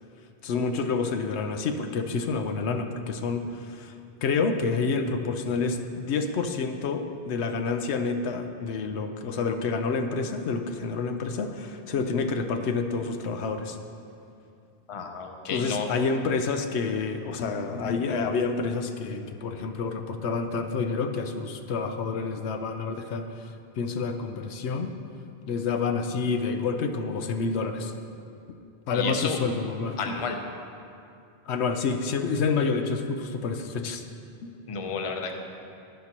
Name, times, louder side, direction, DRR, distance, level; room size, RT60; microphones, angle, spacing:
voice 1, 0.4-3.9 4.2-13.8 15.5-24.9 25.5-27.9 28.9-30.2 31.5-34.0 34.4-34.5, left 4 dB, 85° left, 7 dB, 0.9 m, -28 dB
voice 2, 14.9-16.0 28.9-29.4 30.0-30.4 34.7-35.3, left 5 dB, 35° left, 4 dB, 0.7 m, -31 dB
11.0 x 10.5 x 2.9 m, 2.5 s
omnidirectional pair, 1.1 m